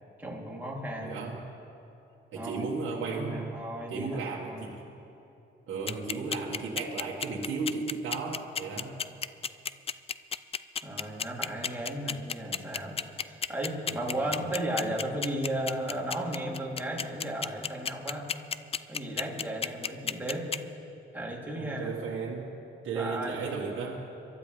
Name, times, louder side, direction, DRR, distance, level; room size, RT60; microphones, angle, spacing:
voice 1, 0.2-1.2 2.3-2.7 3.1-4.7 10.8-18.3 18.9-20.5 21.1-21.9 22.9-23.5, right 1 dB, 10° right, -4 dB, 3.2 m, -35 dB
voice 2, 1.0-1.4 2.3-3.6 3.9-4.8 5.7-9.0 13.9-14.5 21.6-22.5 22.8-24.1, right 4 dB, 75° right, -3 dB, 1.8 m, -35 dB
sound 1, 5.9-20.6, left 7 dB, 30° left, 0.4 m, -31 dB
23.0 x 13.0 x 3.4 m, 2.8 s
cardioid pair, 90°, 20 cm